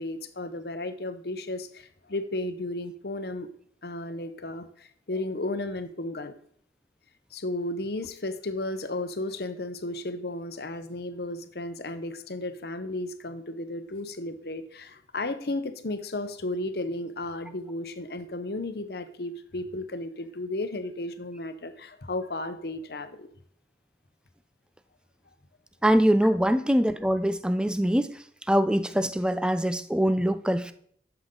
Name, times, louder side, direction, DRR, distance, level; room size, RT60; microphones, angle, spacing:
voice 1, 0.0-3.5 3.8-6.3 7.3-23.3, left 2 dB, 60° left, 0.9 m, -34 dB
voice 2, 25.8-28.1 28.5-30.7, equal, 5° right, 0.4 m, -23 dB
12.0 x 7.0 x 3.8 m
head